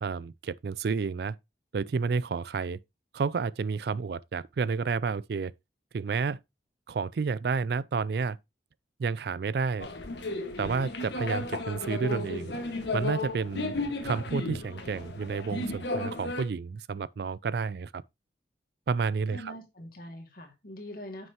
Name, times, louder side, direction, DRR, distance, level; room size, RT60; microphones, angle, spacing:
voice 1, 0.0-1.4 1.7-2.8 3.1-5.5 5.9-6.4 6.9-8.4 9.0-9.9 10.6-12.5 12.9-13.7 14.0-18.0 18.9-19.5, right 5 dB, 60° right, 0.4 m, -30 dB
sound 1, 9.8-16.4, left 2 dB, 70° left, 1.5 m, -34 dB
voice 2, 19.3-21.3, left 1 dB, 50° left, 2.1 m, -43 dB
9.1 x 6.5 x 2.9 m
head